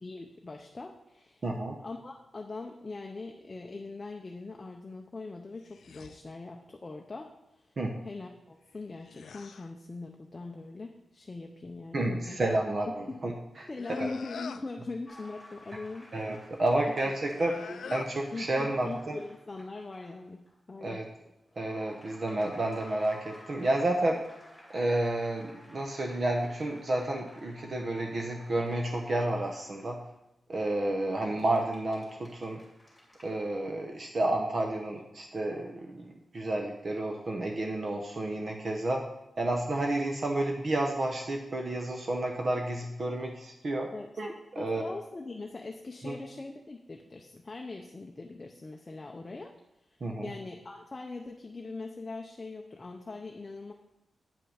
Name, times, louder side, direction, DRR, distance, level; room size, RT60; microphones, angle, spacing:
voice 1, 0.0-1.4 1.8-7.7 8.0-12.4 13.1-13.2 13.7-16.2 18.3-20.4 20.7-21.0 43.9-44.1 44.6-49.5 50.2-53.7, left 3 dB, 25° left, 2 dB, 0.6 m, -41 dB
voice 2, 1.4-1.8 7.8-8.0 11.9-13.7 14.0-14.1 16.1-19.2 20.8-21.1 21.6-24.2 24.7-30.0 30.5-32.6 33.2-39.0 39.4-43.9 44.2-44.8 46.0-46.1 50.0-50.3, right 1 dB, 40° right, 1 dB, 0.8 m, -31 dB
sound 1, 5.6-6.2 8.7-9.7 13.8-14.7 17.3-18.2, left 6 dB, 70° left, 0.4 m, -44 dB
sound 2, 15.0-20.2 20.5-20.6 21.5-30.1 31.2-33.4, left 1 dB, 5° left, 2.6 m, -54 dB
8.8 x 5.5 x 6.4 m, 0.88 s
wide cardioid pair, 170°, 0 cm